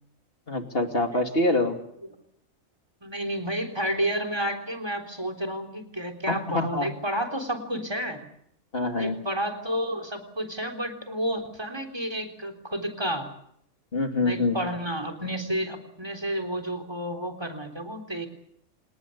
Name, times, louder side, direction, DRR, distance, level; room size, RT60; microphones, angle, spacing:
voice 1, 0.5-1.8 6.3-6.9 8.7-9.2 13.9-14.7, left 2 dB, 45° left, 5 dB, 3.0 m, -25 dB
voice 2, 3.0-8.2 9.0-13.3 14.2-18.3, equal, 20° right, 9 dB, 3.8 m, -31 dB
27.5 x 19.0 x 8.3 m, 0.70 s
omnidirectional pair, 1.4 m